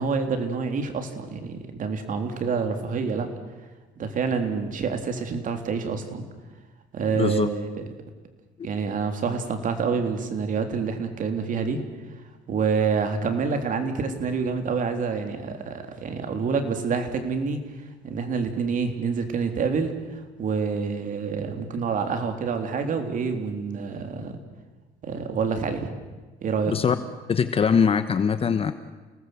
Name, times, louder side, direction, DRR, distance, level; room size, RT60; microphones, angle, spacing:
voice 1, 0.0-3.3 4.0-6.3 6.9-7.8 8.6-11.8 12.5-24.4 25.0-25.9 26.4-26.8, right 5 dB, 50° right, 6 dB, 3.5 m, -27 dB
voice 2, 7.2-7.5 26.7-27.0 27.3-28.7, left 6 dB, 35° left, 11 dB, 1.1 m, -22 dB
29.5 x 19.0 x 7.9 m, 1.3 s
cardioid pair, 110°, 17 cm